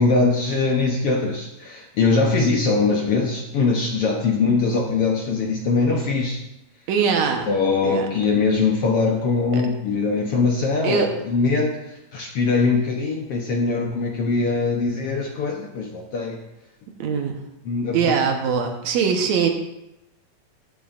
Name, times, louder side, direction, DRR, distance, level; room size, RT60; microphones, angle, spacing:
voice 1, 0.0-6.4 7.5-11.7 12.1-16.4 17.7-18.2, left 4 dB, 70° left, 0 dB, 1.4 m, -22 dB
voice 2, 6.9-7.5 7.8-8.1 9.5-9.6 10.8-11.1 17.0-17.4 17.9-19.5, right 6 dB, 65° right, 4 dB, 2.2 m, -22 dB
14.5 x 11.0 x 2.6 m, 0.88 s
omnidirectional pair, 4.0 m